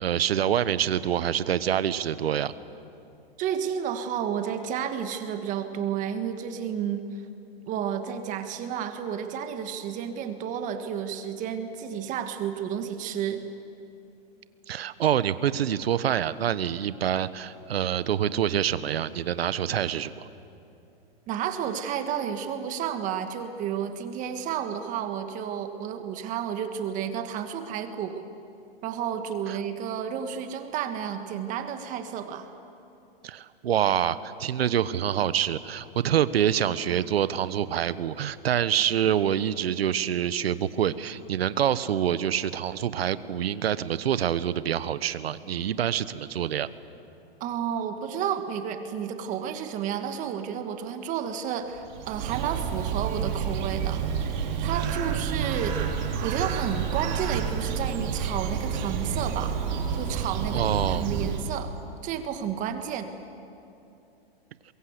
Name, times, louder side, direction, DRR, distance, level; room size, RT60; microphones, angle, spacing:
voice 1, 0.0-2.5 14.7-20.3 29.5-29.6 33.2-46.7 60.5-61.1, right 10 dB, 80° right, 15 dB, 1.1 m, -26 dB
voice 2, 3.4-7.2 7.7-13.4 21.3-28.2 28.8-32.5 47.4-54.0 54.6-55.8 56.2-59.6 59.9-61.7 62.0-63.1, right 8 dB, 25° right, 7 dB, 1.5 m, -31 dB
Bird, 51.8-61.8, right 7 dB, 45° right, 3.3 m, -29 dB
23.0 x 22.5 x 8.2 m, 2.7 s
hypercardioid pair, 145°, 30 cm